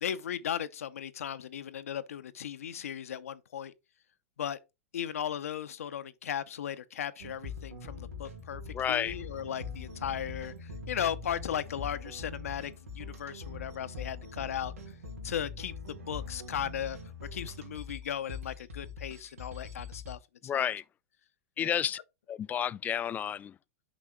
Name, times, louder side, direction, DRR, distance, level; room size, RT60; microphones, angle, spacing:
voice 1, 0.0-3.7 4.4-4.6 4.9-8.6 8.9-14.7 15.2-17.0 17.3-20.2 20.5-20.7 21.6-21.8, left 9 dB, 80° left, 0.7 m, -36 dB
sound 1, 7.2-20.1, left 4 dB, 85° right, 2.9 m, -43 dB
voice 2, 8.7-9.2 20.4-20.8 21.6-22.0 22.3-23.6, left 9 dB, 20° left, 0.3 m, -31 dB
6.2 x 5.6 x 3.7 m
hypercardioid pair, 110°, 8 cm